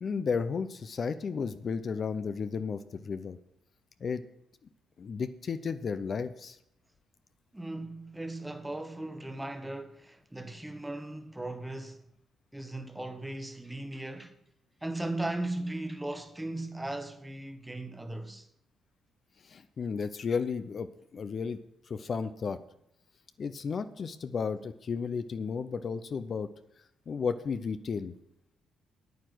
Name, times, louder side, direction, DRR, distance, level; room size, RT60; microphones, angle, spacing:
voice 1, 0.0-3.4 4.0-4.2 5.0-6.6 19.4-21.6 21.9-22.6 23.4-26.5 27.1-28.1, left 5 dB, 45° left, 0.6 m, -33 dB
voice 2, 7.5-12.0 12.5-14.4 14.8-18.5, right 2 dB, 10° right, 1.1 m, -37 dB
9.4 x 8.9 x 6.1 m
cardioid pair, 90°, 0 cm